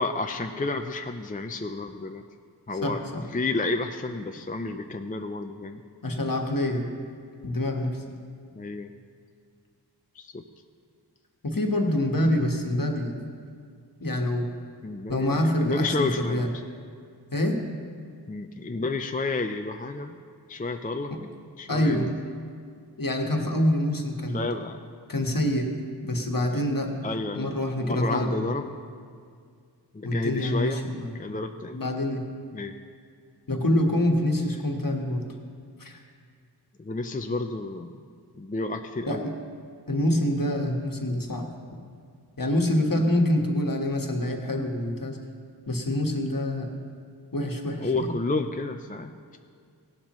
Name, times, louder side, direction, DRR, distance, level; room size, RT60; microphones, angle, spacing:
voice 1, 0.0-2.2 2.7-3.0 3.3-5.8 8.5-8.9 10.2-10.4 14.8-16.5 18.3-20.2 20.5-21.1 21.6-22.1 24.3-24.8 27.0-28.7 29.9-30.8 31.2-31.8 32.5-32.7 36.8-38.0 38.3-39.3 42.9-43.0 47.8-49.4, left 3 dB, 20° left, 6 dB, 0.4 m, -31 dB
voice 2, 2.8-3.3 6.0-6.8 7.4-8.0 11.4-13.2 14.0-14.5 15.1-16.5 17.3-17.6 21.1-21.2 21.7-22.1 23.0-24.4 25.1-25.7 26.0-27.1 27.3-28.5 30.0-31.1 31.7-32.2 33.5-35.2 35.8-36.0 39.0-39.3 39.9-41.5 42.4-45.2 45.7-46.7 47.3-48.2, left 1 dB, 50° left, 2 dB, 1.4 m, -26 dB
17.0 x 11.5 x 3.1 m, 2.2 s
wide cardioid pair, 55°, 42 cm